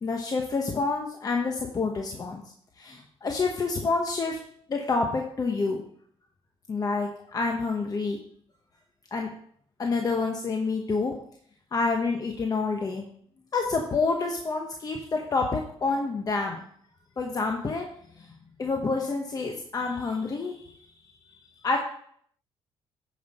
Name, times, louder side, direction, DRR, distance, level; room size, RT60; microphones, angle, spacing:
voice 1, 0.0-2.4 2.8-4.4 4.7-5.8 6.7-8.2 9.1-9.3 9.8-11.1 11.7-13.1 13.5-16.6 17.2-17.9 18.6-20.8 21.6-21.8, left 4 dB, 35° left, 2 dB, 1.0 m, -28 dB
9.3 x 5.4 x 4.2 m, 0.63 s
cardioid pair, 105°, 11 cm